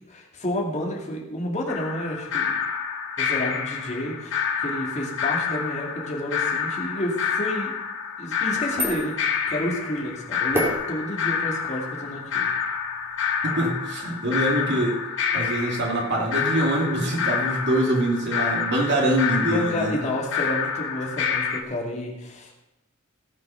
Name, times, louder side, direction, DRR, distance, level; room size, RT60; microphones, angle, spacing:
voice 1, 0.1-2.6 3.2-7.7 8.2-12.5 19.4-22.5, left 1 dB, 30° left, -1 dB, 2.4 m, -30 dB
sound 1, 1.7-21.6, left 6 dB, 60° left, 1.4 m, -28 dB
sound 2, 8.3-14.5, equal, 10° right, 2.6 m, -34 dB
voice 2, 13.4-15.0 15.3-20.0, right 1 dB, 50° right, -1 dB, 2.6 m, -24 dB
17.5 x 6.2 x 5.7 m, 0.93 s
head